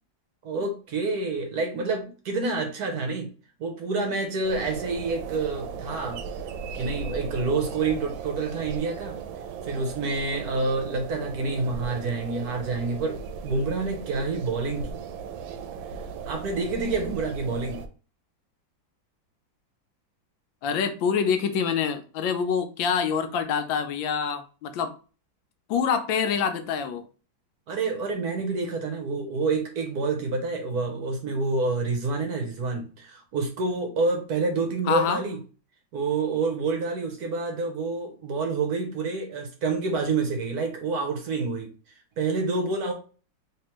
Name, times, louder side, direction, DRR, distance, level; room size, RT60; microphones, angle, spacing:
voice 1, 0.4-3.3 3.6-6.2 6.7-9.2 9.6-15.1 16.3-17.8 27.7-35.4 35.9-42.9, right 3 dB, 65° right, 4 dB, 1.1 m, -28 dB
sound 1, 4.4-17.9, right 6 dB, 80° right, 1.3 m, -37 dB
voice 2, 20.6-24.9 25.7-27.0 34.9-35.2, left 6 dB, 80° left, 8 dB, 1.3 m, -26 dB
3.4 x 3.2 x 2.9 m, 0.37 s
omnidirectional pair, 2.1 m